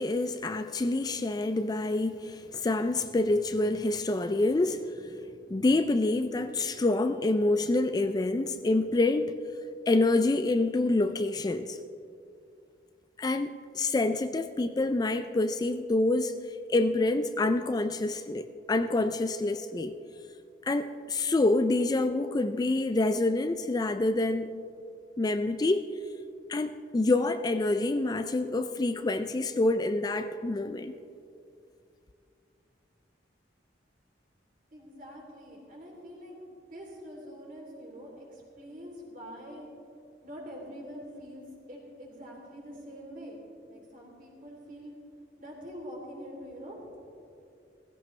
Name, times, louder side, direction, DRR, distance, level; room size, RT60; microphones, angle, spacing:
voice 1, 0.0-4.8 5.5-9.4 9.9-11.8 13.2-16.3 16.7-19.9 20.6-24.5 25.2-25.9 26.5-30.9, left 2 dB, 20° left, 9 dB, 0.3 m, -27 dB
voice 2, 34.7-36.4 36.7-39.6 40.2-43.4 43.7-44.9 45.4-47.0, equal, 50° right, -2 dB, 3.2 m, -45 dB
17.0 x 15.5 x 3.2 m, 2.5 s
head